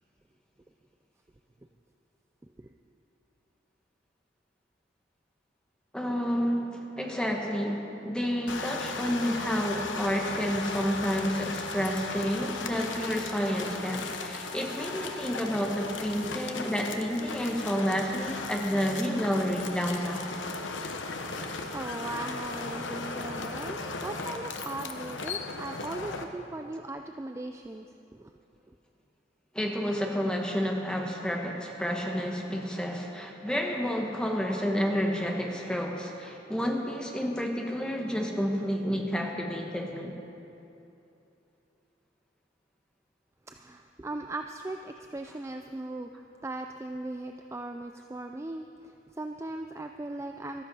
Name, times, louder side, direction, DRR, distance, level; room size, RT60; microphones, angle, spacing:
voice 1, 5.9-20.4 29.5-40.1, equal, 5° left, 1 dB, 1.2 m, -30 dB
sound 1, 8.5-26.2, left 3 dB, 80° left, 1.0 m, -37 dB
voice 2, 21.2-28.3 43.5-46.1 46.4-50.6, right 2 dB, 15° right, 5 dB, 0.3 m, -39 dB
13.0 x 13.0 x 5.4 m, 2.8 s
head